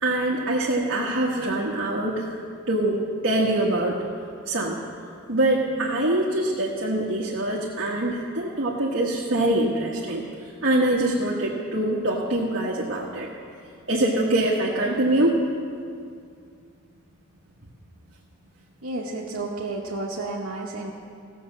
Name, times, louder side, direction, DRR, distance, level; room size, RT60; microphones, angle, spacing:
voice 1, 0.0-2.3 2.7-3.0 3.2-3.9 4.5-4.8 5.3-10.2 10.6-13.3 13.9-15.4, right 1 dB, 60° right, -4 dB, 1.3 m, -24 dB
voice 2, 18.8-20.9, right 2 dB, 85° right, -3 dB, 1.1 m, -31 dB
16.5 x 6.4 x 7.3 m, 2.3 s
head